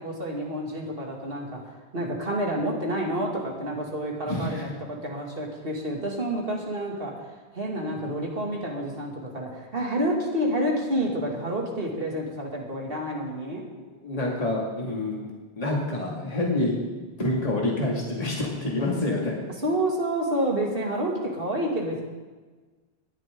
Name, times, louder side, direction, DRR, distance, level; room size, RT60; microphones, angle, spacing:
voice 1, 0.0-13.6 19.6-22.0, right 1 dB, 60° right, -1 dB, 2.7 m, -29 dB
voice 2, 4.2-4.6 14.0-15.3 15.6-16.7 17.2-19.3, left 2 dB, 35° left, -3 dB, 2.5 m, -27 dB
20.5 x 10.5 x 3.8 m, 1.3 s
omnidirectional pair, 1.1 m